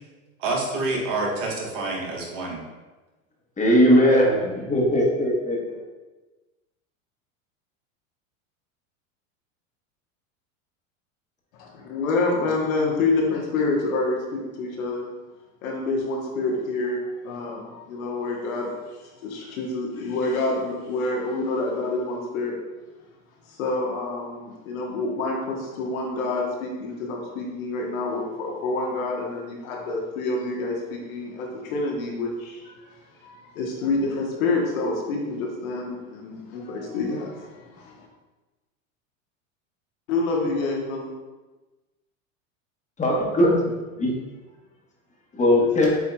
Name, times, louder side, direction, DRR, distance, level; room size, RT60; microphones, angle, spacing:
voice 1, 0.4-2.6, right 2 dB, 65° right, -1 dB, 1.4 m, -27 dB
voice 2, 3.6-5.8 43.0-43.6 44.0-44.1 45.3-45.9, equal, 15° left, -2 dB, 1.1 m, -19 dB
voice 3, 11.5-15.1 15.6-22.6 23.5-38.1 40.1-41.1, left 3 dB, 75° left, -1 dB, 1.2 m, -28 dB
7.4 x 2.7 x 2.3 m, 1.2 s
hypercardioid pair, 105°, 41 cm